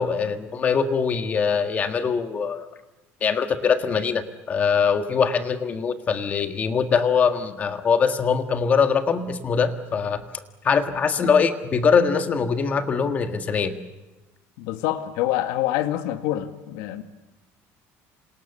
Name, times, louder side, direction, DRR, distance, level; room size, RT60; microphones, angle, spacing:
voice 1, 0.0-2.7 3.2-10.2 10.6-13.7, left 6 dB, 25° left, 1.6 m, -22 dB
voice 2, 14.6-17.0, left 13 dB, 85° left, 1.9 m, -26 dB
28.0 x 27.0 x 7.0 m
cardioid pair, 175°, 6 cm